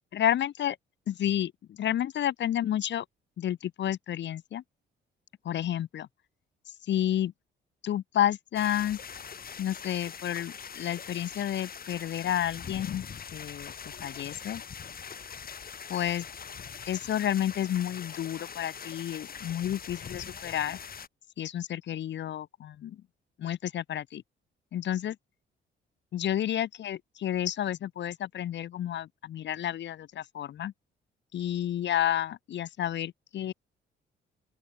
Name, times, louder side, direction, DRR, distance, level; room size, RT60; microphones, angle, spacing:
voice 1, 0.1-0.8 1.1-3.0 3.4-4.6 5.4-6.1 6.9-7.3 7.8-9.0 9.6-13.0 13.3-13.7 14.0-14.6 15.9-16.2 16.9-20.8 21.4-23.0 23.4-24.2 24.7-25.2 26.1-30.7 31.3-33.5, left 11 dB, 65° left, 1.1 m, -30 dB
sound 1, 8.5-21.1, left 7 dB, 50° left, 6.1 m, -43 dB
open air
cardioid pair, 90°, 20 cm